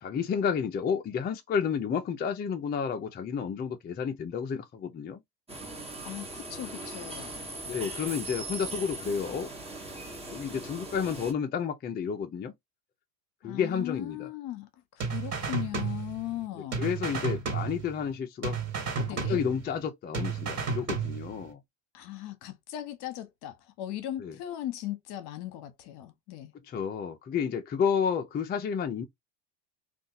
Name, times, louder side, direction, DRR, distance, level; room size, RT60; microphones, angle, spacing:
voice 1, 0.0-5.2 7.6-9.5 10.3-12.5 13.4-14.3 16.5-18.6 19.0-21.6 24.2-24.3 26.6-29.0, left 7 dB, 20° left, 0.5 m, -31 dB
sound 1, 5.5-11.3, right 2 dB, 10° right, 1.1 m, -40 dB
voice 2, 6.0-7.4 13.4-16.8 19.1-19.4 21.9-26.5, left 13 dB, 50° left, 0.9 m, -38 dB
sound 2, 15.0-16.4 16.7-18.2 18.4-19.9 20.1-21.5, right 5 dB, 30° right, 1.7 m, -32 dB
2.7 x 2.5 x 3.9 m
supercardioid pair, 100°, 50 cm